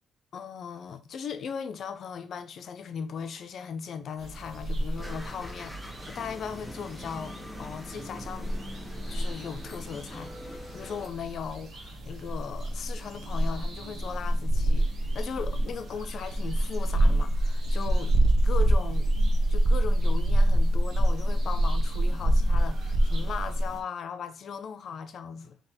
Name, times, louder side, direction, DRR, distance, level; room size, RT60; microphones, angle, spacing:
voice 1, 0.3-5.7 6.1-8.6 9.1-18.2 18.4-19.1 19.5-25.6, left 6 dB, 50° left, 0.6 m, -38 dB
Village at morning, 4.2-23.8, right 1 dB, 45° right, 1.0 m, -27 dB
sound 1, 5.0-11.1, left 1 dB, 5° left, 0.6 m, -44 dB
4.0 x 2.9 x 4.2 m
cardioid pair, 155°, 0 cm